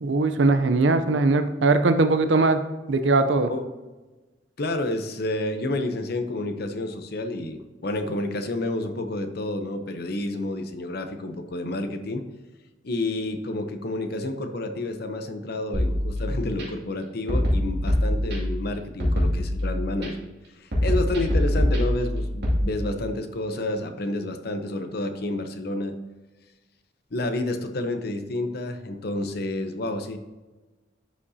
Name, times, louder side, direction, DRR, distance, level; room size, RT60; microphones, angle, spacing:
voice 1, 0.0-2.6 2.9-3.5, right 3 dB, 85° right, 9 dB, 0.6 m, -20 dB
voice 2, 4.6-12.2 12.8-20.2 20.6-25.9 27.1-30.2, left 2 dB, 60° left, 7 dB, 0.8 m, -29 dB
sound 1, 15.7-16.6 17.3-18.6 19.0-20.1 20.7-22.6, left 1 dB, 60° right, 2.5 m, -24 dB
11.5 x 5.1 x 2.8 m, 1.2 s
head